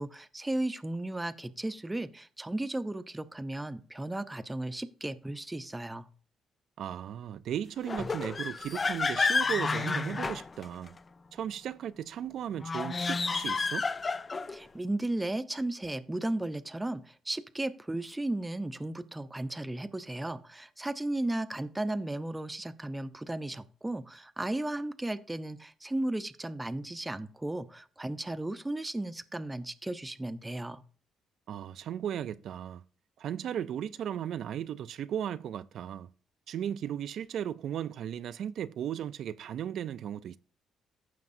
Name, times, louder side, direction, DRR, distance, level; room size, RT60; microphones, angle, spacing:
voice 1, 0.0-6.1 14.5-30.8, right 1 dB, 15° right, 0.7 m, -35 dB
voice 2, 6.8-11.0 11.3-13.9 31.5-32.8 33.2-36.1 36.5-40.4, right 9 dB, 70° right, 0.4 m, -36 dB
sound 1, 7.8-11.0 12.6-14.6, left 4 dB, 30° left, 0.5 m, -30 dB
15.0 x 5.9 x 2.6 m
cardioid pair, 90°, 0 cm